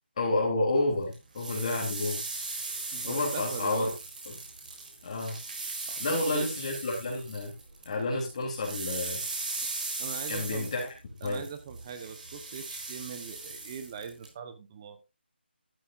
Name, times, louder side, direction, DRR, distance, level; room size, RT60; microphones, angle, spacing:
voice 1, 0.2-2.2 3.0-3.9 5.0-5.4 6.0-7.5 7.8-9.2 10.3-10.9 11.2-11.5, left 2 dB, 35° left, -1 dB, 3.3 m, -30 dB
sound 1, 1.1-7.9 8.2-14.3, right 3 dB, 45° right, 4.0 m, -38 dB
voice 2, 2.9-3.9 5.9-6.5 10.0-10.7 11.2-15.0, right 6 dB, 25° right, 9 dB, 1.0 m, -40 dB
12.5 x 11.0 x 2.5 m, 0.24 s
figure-of-eight pair, 160°, 6 cm